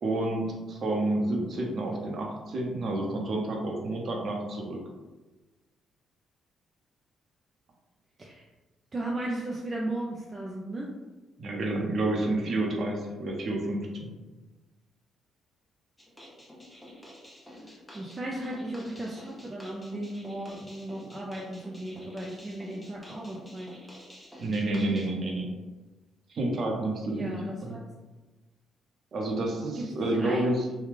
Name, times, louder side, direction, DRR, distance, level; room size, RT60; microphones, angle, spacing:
voice 1, 0.0-4.8 11.4-14.1 24.4-25.5 26.3-27.4 27.6-27.8 29.1-30.6, right 2 dB, 55° right, -1 dB, 0.7 m, -29 dB
voice 2, 8.9-10.9 17.7-23.7 27.0-27.8 29.8-30.5, right 1 dB, 30° right, -3 dB, 0.4 m, -36 dB
sound 1, 16.0-25.1, equal, 10° left, 0.8 m, -49 dB
3.2 x 2.3 x 3.4 m, 1.2 s
cardioid pair, 90°, 0 cm